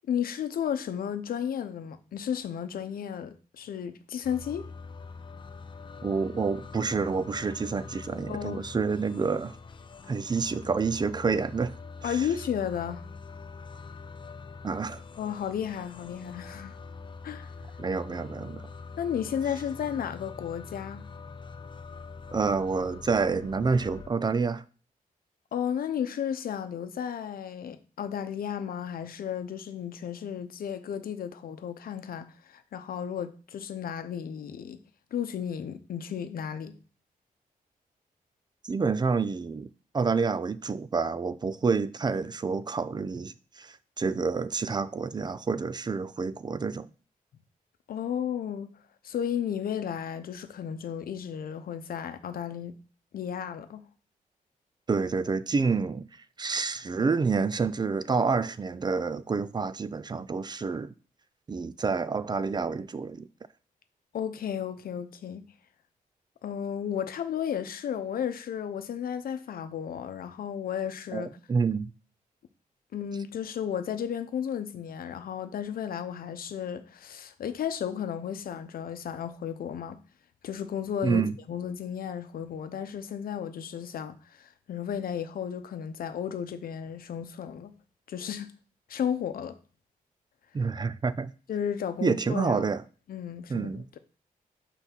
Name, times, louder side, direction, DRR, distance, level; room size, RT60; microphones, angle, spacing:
voice 1, 0.1-4.7 8.3-8.6 12.0-13.1 15.2-16.8 17.2-17.5 19.0-21.0 25.5-34.8 35.1-36.8 47.9-48.7 49.0-52.8 53.1-53.8 64.1-65.5 66.4-71.3 72.9-80.0 80.4-81.2 81.5-87.7 88.1-88.5 88.9-89.6 91.5-92.6 93.1-94.0, left 8 dB, 75° left, 0.7 m, -33 dB
sound 1, 4.2-24.1, left 4 dB, 35° left, 0.5 m, -44 dB
voice 2, 6.0-9.5 10.1-11.8 12.0-12.2 14.6-15.0 17.8-18.7 22.3-24.6 38.6-39.7 39.9-46.9 54.9-56.0 56.4-60.9 61.5-63.3 71.1-71.9 81.0-81.3 90.5-91.3 92.0-92.8 93.5-93.9, right 4 dB, 30° right, 0.4 m, -28 dB
5.8 x 4.0 x 5.8 m
wide cardioid pair, 115°, 15 cm